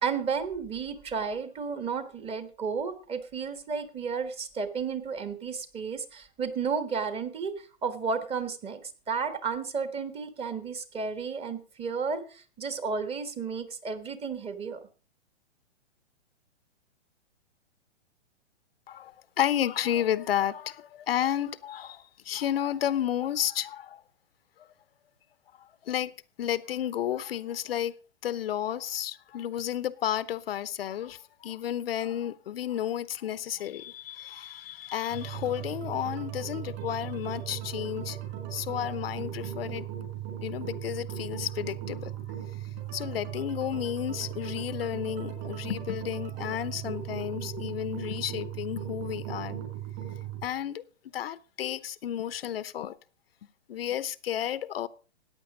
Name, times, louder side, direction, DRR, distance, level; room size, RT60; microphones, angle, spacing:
voice 1, 0.0-14.8, right 5 dB, 15° right, 1.4 m, -33 dB
voice 2, 18.9-24.0 24.6-24.7 25.6-26.1 26.4-27.9 28.2-38.2 38.5-39.9 40.4-42.2 42.9-49.6 50.4-50.8 51.1-53.0 53.7-54.9, left 11 dB, 60° left, 0.8 m, -32 dB
sound 1, 35.1-50.5, right 11 dB, 40° right, 6.7 m, -37 dB
14.5 x 9.5 x 4.9 m
hypercardioid pair, 125°, 34 cm